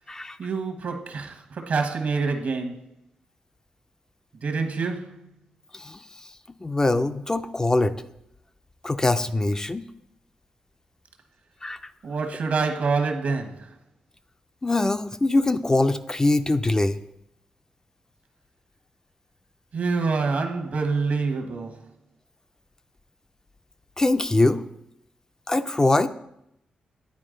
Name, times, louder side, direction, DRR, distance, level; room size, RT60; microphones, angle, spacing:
voice 1, 0.4-2.8 4.4-5.4 12.0-13.7 19.7-21.8, right 4 dB, 65° right, 1.1 m, -26 dB
voice 2, 6.6-8.0 8.8-9.8 11.6-11.8 14.6-17.0 24.0-24.6 25.5-26.1, left 2 dB, 20° left, 0.4 m, -22 dB
9.7 x 4.6 x 3.8 m
cardioid pair, 65°, 3 cm